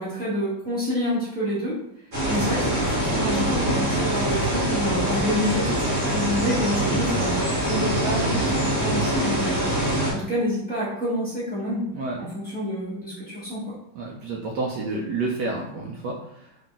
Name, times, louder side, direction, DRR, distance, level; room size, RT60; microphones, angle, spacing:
voice 1, 0.0-1.8 2.3-5.8 6.1-9.7 10.1-11.9 12.2-13.7, left 1 dB, 10° left, -11 dB, 0.5 m, -28 dB
sound 1, 2.1-10.1, right 1 dB, 30° right, 1.0 m, -24 dB
voice 2, 14.0-16.5, right 3 dB, 85° right, -2 dB, 0.9 m, -29 dB
3.7 x 2.3 x 3.8 m, 0.77 s
omnidirectional pair, 2.4 m